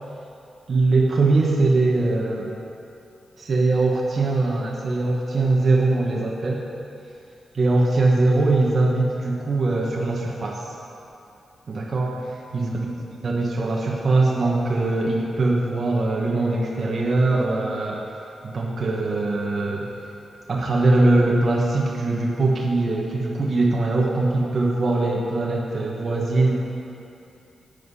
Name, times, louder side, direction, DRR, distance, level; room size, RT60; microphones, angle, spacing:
voice 1, 0.7-2.5 3.4-6.6 7.5-10.7 11.7-12.2 12.5-18.0 18.4-19.9 20.5-26.6, right 2 dB, 40° right, -3 dB, 1.2 m, -21 dB
11.5 x 8.2 x 5.6 m, 2.7 s
wide cardioid pair, 150°, 0 cm